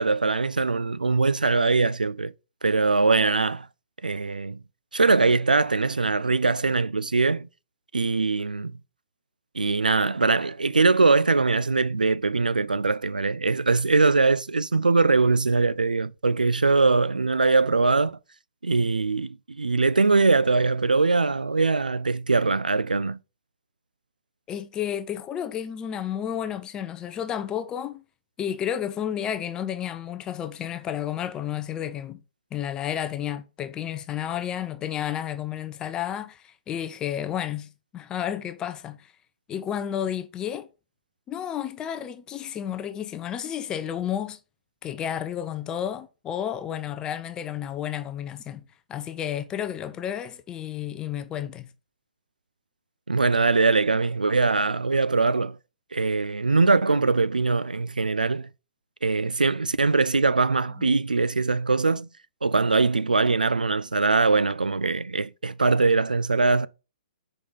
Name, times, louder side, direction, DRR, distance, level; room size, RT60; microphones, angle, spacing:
voice 1, 0.0-2.3 2.6-3.7 4.0-4.6 4.9-7.5 7.9-8.8 9.5-18.2 18.6-23.2 53.1-55.6 55.9-58.5 59.0-62.1 62.4-66.7, right 3 dB, 80° right, 0.3 m, -22 dB
voice 2, 24.5-28.0 28.4-32.2 32.5-39.1 39.5-40.7 41.3-44.4 44.8-48.6 48.9-51.7 60.8-60.9, left 10 dB, 15° left, 0.4 m, -31 dB
5.0 x 3.8 x 5.3 m
figure-of-eight pair, 120°, 5 cm